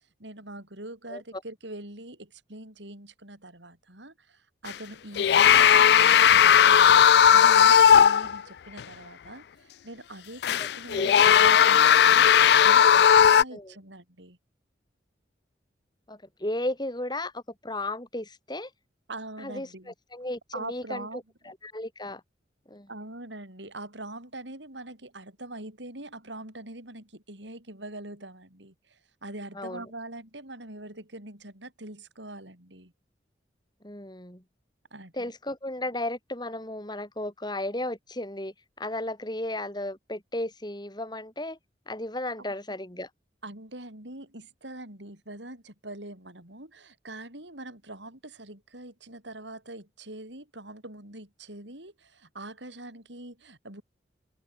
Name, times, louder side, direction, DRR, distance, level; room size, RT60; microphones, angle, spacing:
voice 1, 0.0-14.4 19.1-19.9 20.5-21.2 22.9-32.9 34.9-35.3 43.4-53.8, right 2 dB, 75° right, 8.0 m, -43 dB
sound 1, 4.7-4.8 5.2-8.4 8.8-8.9 10.4-13.4, left 8 dB, 60° left, 0.3 m, -17 dB
voice 2, 10.9-11.2 13.5-13.7 16.1-18.7 19.4-21.1 21.5-22.2 22.7-22.9 29.6-29.9 33.8-34.4 35.1-41.6 41.9-43.1, left 1 dB, 25° left, 3.7 m, -34 dB
open air
head